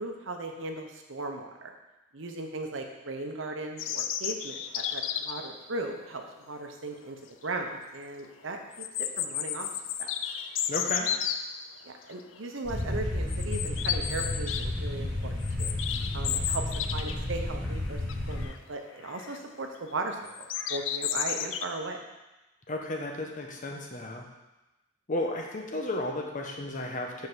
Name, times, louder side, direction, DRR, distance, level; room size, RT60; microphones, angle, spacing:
voice 1, 0.0-1.7 2.1-8.8 9.2-9.7 10.0-10.1 11.8-15.3 15.6-15.7 16.1-16.6 16.9-18.0 18.3-20.3 20.7-22.0, right 2 dB, 70° right, 3 dB, 0.9 m, -37 dB
sound 1, 3.8-5.5 7.0-7.1 7.5-7.6 8.7-11.4 12.1-12.4 12.7-12.8 13.3-14.7 15.0-17.3 17.6-17.7 18.1-18.6 19.0-19.4 20.3-21.6, left 9 dB, 70° left, 0.4 m, -32 dB
voice 2, 10.7-11.1 22.7-24.3 25.1-27.3, left 2 dB, 40° left, 1 dB, 1.0 m, -33 dB
sound 2, 12.6-18.5, left 1 dB, 5° left, 1.9 m, -32 dB
5.5 x 4.6 x 6.2 m, 1.0 s
head